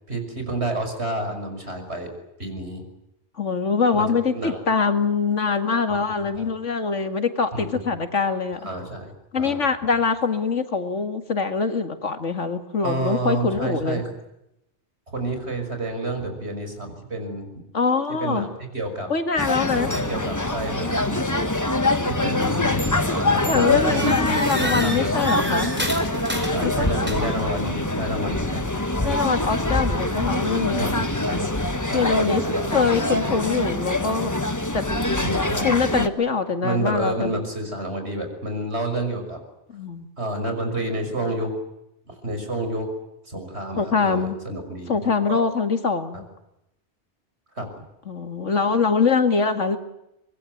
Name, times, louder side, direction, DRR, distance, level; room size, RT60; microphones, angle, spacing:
voice 1, 0.1-2.1 2.4-2.8 3.9-4.6 5.9-6.5 7.5-7.8 8.6-9.6 12.8-14.1 15.1-17.5 18.2-18.5 18.7-19.1 19.7-21.5 22.0-25.5 26.5-29.2 30.8-33.2 35.0-35.7 36.6-39.4 40.2-41.6 42.1-42.9 43.2-45.4 46.1-46.2 47.6-47.7, right 1 dB, 65° right, 5 dB, 6.4 m, -30 dB
voice 2, 3.4-8.7 9.3-14.0 17.7-18.5 19.1-19.9 23.5-25.7 26.6-26.9 29.0-30.9 31.9-32.4 32.7-34.3 34.7-34.8 35.6-37.4 39.7-40.1 43.8-44.4 44.9-46.3 48.1-49.8, left 5 dB, 90° left, 8 dB, 2.5 m, -23 dB
sound 1, 19.4-36.1, left 2 dB, 15° left, 1.4 m, -24 dB
sound 2, 22.8-23.1 23.4-27.5, equal, 10° right, 4.7 m, -31 dB
25.0 x 21.5 x 9.3 m, 0.87 s
omnidirectional pair, 1.2 m